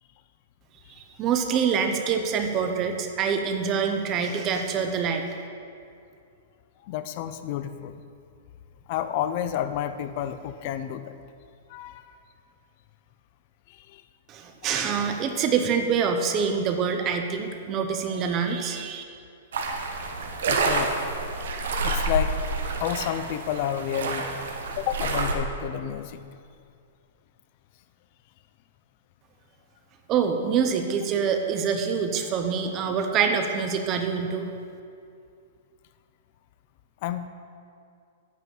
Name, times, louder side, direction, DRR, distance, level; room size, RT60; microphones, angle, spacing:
voice 1, 1.2-5.2 14.3-19.0 30.1-34.5, right 6 dB, 20° right, 5 dB, 0.6 m, -25 dB
voice 2, 6.8-8.0 8.9-11.1 11.7-12.2 13.7-14.0 20.5-21.1 21.8-24.3 24.8-26.2 37.0-37.3, left 10 dB, 35° left, 11 dB, 0.4 m, -30 dB
sound 1, 19.5-25.3, right 3 dB, 70° right, 1.3 m, -28 dB
9.2 x 5.8 x 7.8 m, 2.4 s
hypercardioid pair, 175°, 0 cm